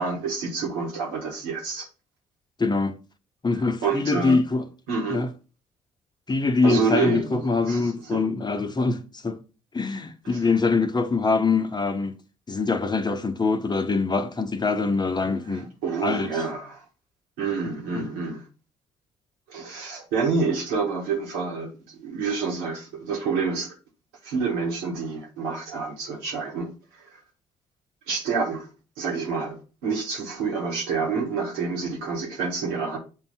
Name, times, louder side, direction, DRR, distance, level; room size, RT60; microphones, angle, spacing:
voice 1, 0.0-1.9 3.8-4.4 4.9-5.2 6.6-8.2 10.2-10.4 15.5-16.8 17.4-18.4 19.5-23.8 24.2-27.2 28.1-28.7 29.0-33.0, right 5 dB, 80° right, 1.7 m, -28 dB
voice 2, 2.6-3.0 3.4-4.6 5.1-5.3 6.3-9.4 9.7-12.1 12.5-15.7 16.0-16.3 17.9-18.1, left 4 dB, 25° left, 0.9 m, -24 dB
6.9 x 2.7 x 5.6 m
hypercardioid pair, 50°, 16 cm